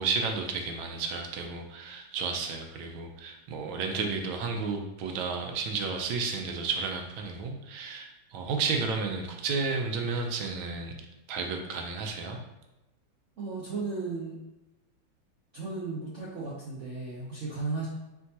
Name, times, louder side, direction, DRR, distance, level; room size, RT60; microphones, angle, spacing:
voice 1, 0.0-11.0 11.3-12.4, right 4 dB, 80° right, 3 dB, 1.4 m, -32 dB
voice 2, 13.4-14.4 15.5-17.9, right 3 dB, 65° right, -6 dB, 0.7 m, -35 dB
4.4 x 3.6 x 2.8 m, 1.0 s
omnidirectional pair, 2.2 m